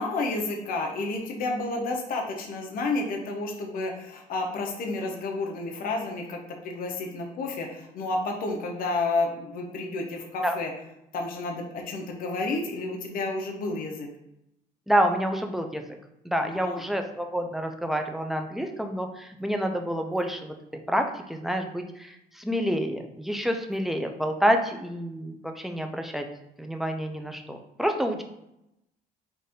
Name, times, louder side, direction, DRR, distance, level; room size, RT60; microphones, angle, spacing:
voice 1, 0.0-10.7 11.1-14.1 16.4-16.8, left 3 dB, 60° left, 1 dB, 0.8 m, -31 dB
voice 2, 14.9-15.8 16.2-20.5 20.9-26.3 26.6-28.2, equal, ahead, 4 dB, 0.4 m, -28 dB
4.0 x 2.5 x 3.6 m, 0.84 s
cardioid pair, 110°, 17 cm